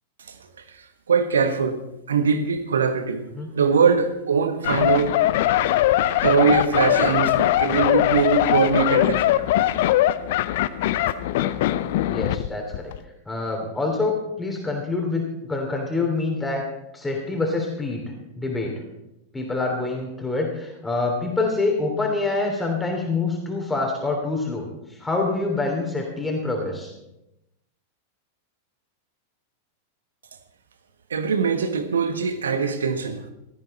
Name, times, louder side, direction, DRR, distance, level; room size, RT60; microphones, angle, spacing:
voice 1, 1.1-1.8 2.1-3.2 3.5-5.2 6.2-9.3 31.1-33.2, right 5 dB, 70° right, 8 dB, 1.5 m, -21 dB
sound 1, 4.6-12.5 12.7-13.0, left 14 dB, 55° left, 0.6 m, -21 dB
voice 2, 12.1-12.9 13.3-18.8 19.3-24.7 25.0-26.9, left 3 dB, 10° left, 1 dB, 3.1 m, -26 dB
16.5 x 13.5 x 4.3 m, 0.88 s
figure-of-eight pair, 90°, 0 cm